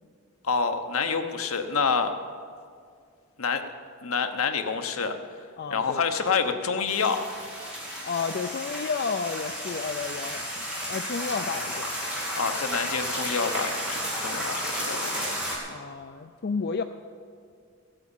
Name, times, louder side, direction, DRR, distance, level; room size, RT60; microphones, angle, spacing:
voice 1, 0.4-2.1 3.4-3.6 4.0-5.1 5.7-7.3 12.4-15.2, left 5 dB, 70° left, 6 dB, 0.9 m, -27 dB
voice 2, 5.6-6.1 8.0-11.9 15.6-16.8, left 5 dB, 45° left, 7 dB, 0.4 m, -32 dB
sound 1, 6.9-15.6, equal, 5° right, 2.4 m, -32 dB
15.5 x 9.1 x 7.2 m, 2.2 s
head